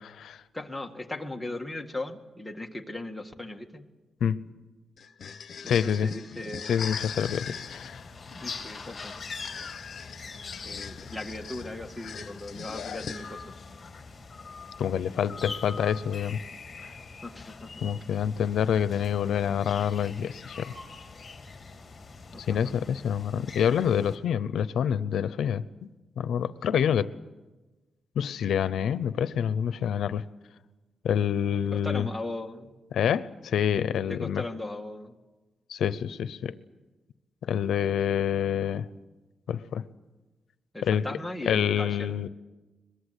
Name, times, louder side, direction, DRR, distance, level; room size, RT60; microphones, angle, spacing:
voice 1, 0.5-3.9 5.6-7.0 8.3-9.2 10.6-13.6 17.2-17.7 22.3-23.0 31.7-32.8 34.1-35.2 40.7-42.1, left 2 dB, 5° left, 2 dB, 1.9 m, -38 dB
sound 1, 5.0-13.6, left 7 dB, 65° left, 1.1 m, -41 dB
voice 2, 5.7-6.1 6.7-8.0 14.8-16.4 17.8-20.7 22.5-25.9 26.2-27.1 28.2-30.2 31.0-32.1 32.9-34.4 35.7-36.5 37.4-38.9 39.5-39.8 40.8-41.0 41.5-42.3, left 8 dB, 90° left, 15 dB, 0.7 m, -27 dB
sound 2, 6.9-24.2, left 4 dB, 35° left, 3.5 m, -43 dB
23.0 x 22.0 x 8.2 m, 1.2 s
cardioid pair, 110°, 0 cm